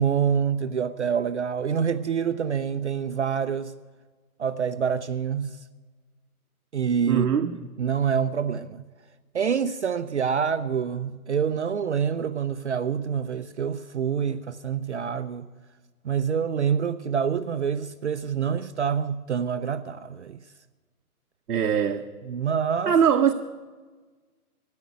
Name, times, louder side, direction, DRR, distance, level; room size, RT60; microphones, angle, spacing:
voice 1, 0.0-3.7 4.4-5.6 6.7-7.3 7.8-8.8 9.3-15.5 16.0-20.4 22.3-23.0, right 7 dB, 50° right, 0.5 m, -26 dB
voice 2, 7.1-7.5 21.5-22.1 22.9-23.3, right 8 dB, 75° right, 0.9 m, -21 dB
13.0 x 10.5 x 9.3 m
hypercardioid pair, 165°, 45 cm